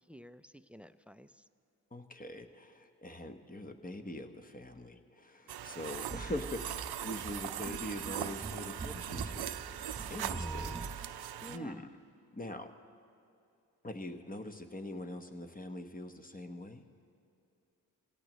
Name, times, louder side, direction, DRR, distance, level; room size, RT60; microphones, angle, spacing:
voice 1, 0.1-1.5 10.2-10.9 11.4-11.8, equal, 5° right, 14 dB, 0.5 m, -50 dB
voice 2, 1.9-9.8 10.1-12.0 12.3-12.7 13.8-16.9, left 1 dB, 20° left, 7 dB, 1.2 m, -43 dB
sound 1, 5.5-11.6, right 11 dB, 70° right, 0.6 m, -40 dB
sound 2, 6.1-11.1, right 3 dB, 20° right, 1.2 m, -44 dB
24.0 x 16.5 x 3.1 m, 2.7 s
supercardioid pair, 45°, 40 cm